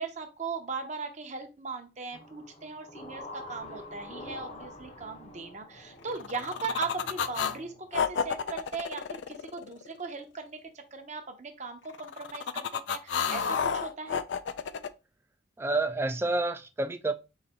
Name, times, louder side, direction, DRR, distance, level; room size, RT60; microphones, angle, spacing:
voice 1, 0.0-14.2, right 4 dB, 40° right, 0.7 m, -38 dB
sound 1, 2.1-7.9, left 1 dB, 35° left, 0.7 m, -46 dB
sound 2, 6.0-7.6 7.9-10.1 11.9-14.9, left 7 dB, 70° left, 0.4 m, -31 dB
voice 2, 15.6-17.1, right 2 dB, 15° right, 0.3 m, -29 dB
4.0 x 2.6 x 4.2 m
head